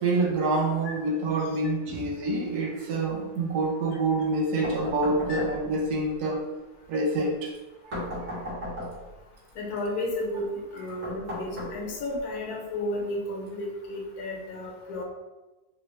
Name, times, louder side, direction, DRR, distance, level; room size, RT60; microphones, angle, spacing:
voice 1, 0.0-6.4 6.9-7.5 7.8-8.4, right 2 dB, 85° right, -1 dB, 1.2 m, -27 dB
sound 1, 4.6-5.9 7.9-9.2 11.0-12.2, left 1 dB, 60° right, 1.4 m, -36 dB
voice 2, 9.6-10.4 10.7-15.0, left 1 dB, 85° left, -1 dB, 1.3 m, -33 dB
3.4 x 2.3 x 3.1 m, 1.2 s
omnidirectional pair, 1.6 m